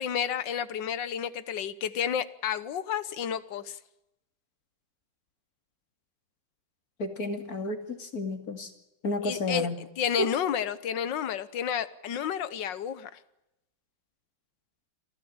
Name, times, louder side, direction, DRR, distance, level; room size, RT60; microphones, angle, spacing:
voice 1, 0.0-3.8 9.2-13.1, left 8 dB, 65° left, 15 dB, 1.6 m, -31 dB
voice 2, 7.0-8.7 9.0-9.8 10.2-10.3, left 2 dB, 45° left, 6 dB, 3.0 m, -31 dB
26.5 x 15.5 x 8.8 m, 0.90 s
omnidirectional pair, 2.2 m